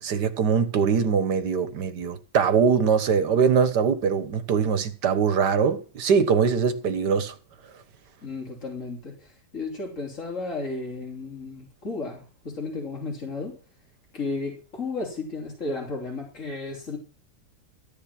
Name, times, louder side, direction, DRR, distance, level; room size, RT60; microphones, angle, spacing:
voice 1, 0.0-7.3, right 6 dB, 80° right, 1.9 m, -22 dB
voice 2, 8.2-13.6 14.1-17.0, left 3 dB, 45° left, 3.7 m, -33 dB
14.0 x 9.9 x 5.9 m
omnidirectional pair, 1.8 m